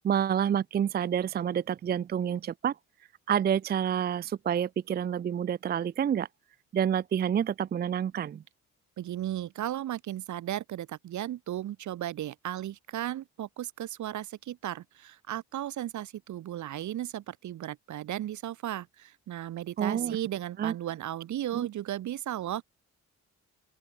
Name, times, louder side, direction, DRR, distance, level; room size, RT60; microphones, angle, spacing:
voice 1, 0.0-2.8 3.3-6.3 6.7-8.4 19.8-20.2 20.6-20.7 21.5-21.7, right 9 dB, 35° right, 0.4 m, -28 dB
voice 2, 9.0-22.6, right 12 dB, 70° right, 1.9 m, -35 dB
open air
cardioid pair, 90°, 30 cm